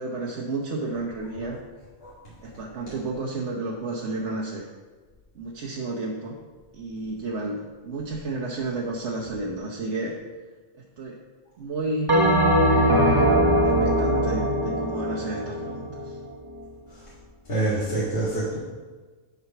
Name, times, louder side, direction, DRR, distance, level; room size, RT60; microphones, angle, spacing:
voice 1, 0.0-1.6 2.4-4.7 5.3-6.4 6.7-10.1 11.0-11.2 11.6-12.1 12.6-13.3 13.6-16.2, right 2 dB, 75° right, -1 dB, 1.2 m, -32 dB
Bell, 12.1-16.7, equal, 20° right, 0.8 m, -21 dB
voice 2, 17.5-18.6, right 2 dB, 55° left, -8 dB, 2.0 m, -26 dB
9.6 x 4.9 x 5.8 m, 1.4 s
omnidirectional pair, 1.2 m